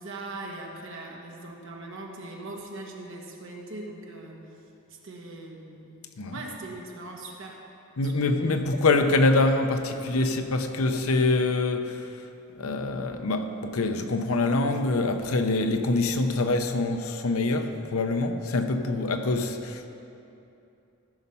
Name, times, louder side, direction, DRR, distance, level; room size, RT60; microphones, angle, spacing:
voice 1, 0.0-4.5 4.9-6.0 6.3-7.6 8.0-8.3, right 2 dB, 60° right, 0 dB, 1.3 m, -40 dB
voice 2, 8.0-12.1 12.6-19.9, left 2 dB, 75° left, 7 dB, 0.7 m, -25 dB
14.0 x 5.5 x 5.5 m, 2.7 s
head